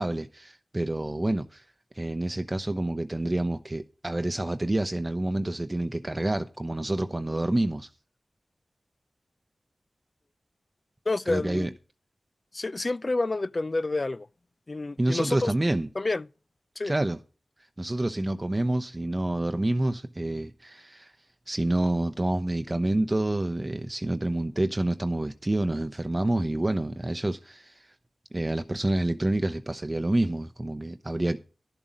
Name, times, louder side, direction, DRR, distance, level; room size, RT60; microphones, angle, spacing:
voice 1, 0.0-1.6 1.9-7.9 11.3-11.7 15.0-15.9 16.8-17.2 17.8-21.1 21.5-27.9 28.3-31.4, right 1 dB, 30° right, 0.7 m, -28 dB
voice 2, 11.1-11.8 12.5-14.3 14.7-15.5 16.0-16.3 16.8-16.9, left 2 dB, 45° left, 0.4 m, -28 dB
11.0 x 7.2 x 5.3 m
cardioid pair, 40°, 0 cm